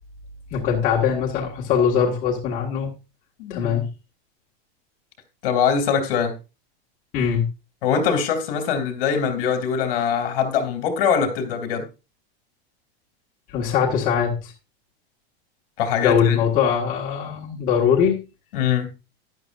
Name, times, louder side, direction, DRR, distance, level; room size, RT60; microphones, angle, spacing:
voice 1, 0.5-2.9 3.5-3.9 7.1-7.5 13.5-14.5 16.0-18.2, left 7 dB, 25° left, 1.7 m, -21 dB
voice 2, 3.4-3.8 5.4-6.3 7.8-11.9 15.8-16.4 18.5-18.9, left 7 dB, 60° left, 2.7 m, -22 dB
12.5 x 10.5 x 2.5 m
supercardioid pair, 170°, 31 cm